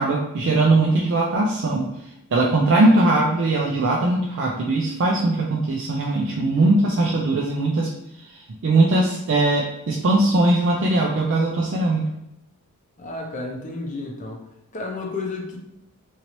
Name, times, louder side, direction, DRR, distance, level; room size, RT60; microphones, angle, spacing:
voice 1, 0.0-1.9 2.3-7.9 8.6-12.0, right 2 dB, 55° right, -1 dB, 0.4 m, -20 dB
voice 2, 13.0-14.4 14.7-15.6, left 3 dB, 35° left, 1 dB, 0.6 m, -31 dB
2.9 x 2.7 x 2.9 m, 0.83 s
head